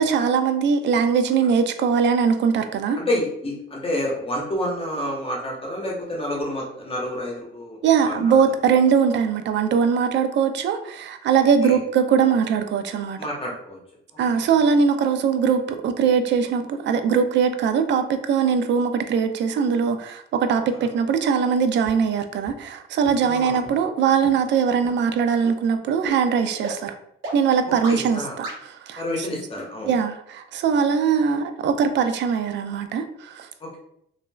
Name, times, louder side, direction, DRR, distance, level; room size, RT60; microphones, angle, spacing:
voice 1, 0.0-3.0 7.8-13.2 14.2-27.0 27.3-29.3 29.9-33.5, right 6 dB, 65° right, 0.4 m, -21 dB
voice 2, 3.0-8.3 11.6-11.8 13.2-13.8 14.3-14.4 20.7-20.9 23.2-23.6 27.9-28.4 29.0-29.9 33.6-33.8, left 1 dB, 30° left, 0.9 m, -29 dB
sound 1, 21.8-21.9 22.4-22.5 23.0-23.1 23.6-23.7 24.2-24.3 24.8-24.9 25.4-25.5 26.0-26.1 26.6-26.7 27.2-27.3 27.8-27.9 28.4-28.5, right 3 dB, 90° right, 1.0 m, -33 dB
2.9 x 2.5 x 2.2 m
cardioid pair, 90°, 20 cm